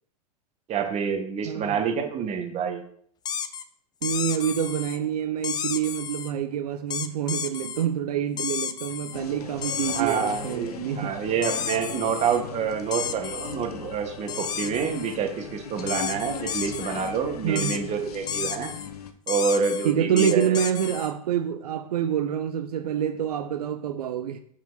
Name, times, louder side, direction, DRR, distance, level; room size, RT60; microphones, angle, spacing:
voice 1, 0.7-2.8 9.9-18.7 19.3-20.6, right 6 dB, 35° right, 1.4 m, -27 dB
voice 2, 1.5-1.8 4.0-11.1 17.4-17.9 19.8-24.4, right 9 dB, 85° right, 0.5 m, -27 dB
sound 1, 3.2-3.6 4.0-5.0 5.4-6.3 6.9-7.8 8.4-9.2 9.6-10.6 11.4-12.4 12.9-13.6 14.3-15.2 15.9-17.1 17.6-17.8 18.3-18.9 19.3-21.1, left 8 dB, 20° left, 0.5 m, -32 dB
sound 2, 9.1-19.1, left 8 dB, 80° left, 0.8 m, -39 dB
7.3 x 4.4 x 4.0 m
hypercardioid pair, 105°, 19 cm